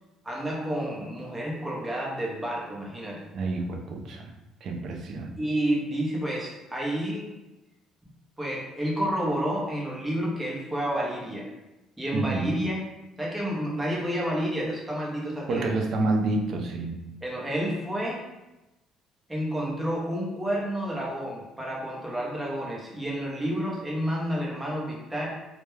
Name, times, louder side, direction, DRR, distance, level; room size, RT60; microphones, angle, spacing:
voice 1, 0.2-3.3 5.4-7.3 8.4-11.5 12.0-12.9 13.2-15.7 17.2-18.2 19.3-25.3, equal, 10° right, -4 dB, 0.7 m, -30 dB
voice 2, 3.3-4.3 4.6-5.3 12.1-12.5 15.5-17.0, right 2 dB, 55° right, 2 dB, 0.4 m, -28 dB
2.2 x 2.1 x 3.1 m, 1.0 s
cardioid pair, 110°, 0 cm